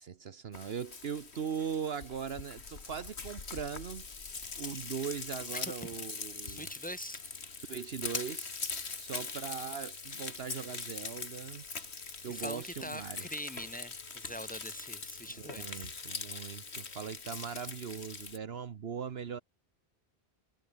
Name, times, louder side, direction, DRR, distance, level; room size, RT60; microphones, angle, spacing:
voice 1, 0.0-4.1 4.6-6.7 7.7-8.5 9.0-11.6 12.2-13.2 15.4-19.4, right 7 dB, 70° right, 1.2 m, -40 dB
Frying (food), 0.5-18.4, left 4 dB, 80° left, 2.4 m, -42 dB
voice 2, 6.5-7.2 12.0-15.9 16.4-16.5, equal, 5° left, 5.1 m, -43 dB
omnidirectional pair, 1.1 m